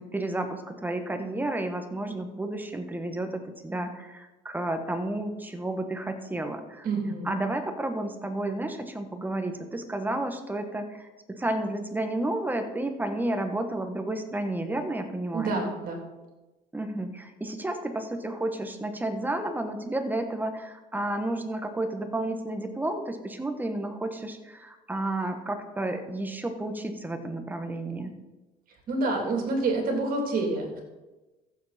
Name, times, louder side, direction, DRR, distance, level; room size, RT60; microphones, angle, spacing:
voice 1, 0.0-6.9 7.2-15.6 16.7-28.1, right 1 dB, 10° right, 6 dB, 1.3 m, -31 dB
voice 2, 6.8-7.4 15.3-16.0 28.9-30.8, right 3 dB, 55° right, 1 dB, 3.3 m, -28 dB
15.0 x 7.3 x 4.3 m, 1.1 s
cardioid pair, 110°, 17 cm